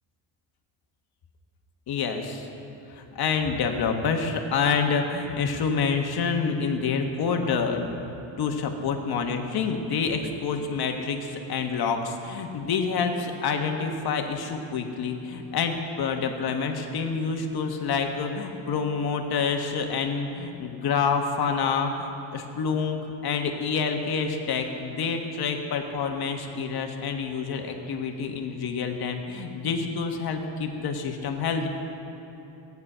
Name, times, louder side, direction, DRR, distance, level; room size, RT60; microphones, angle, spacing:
voice 1, 1.9-2.5 2.9-8.0 8.4-23.0 23.2-31.7, left 5 dB, 55° left, 4 dB, 1.4 m, -27 dB
14.5 x 9.6 x 5.6 m, 2.9 s
cardioid pair, 115°, 44 cm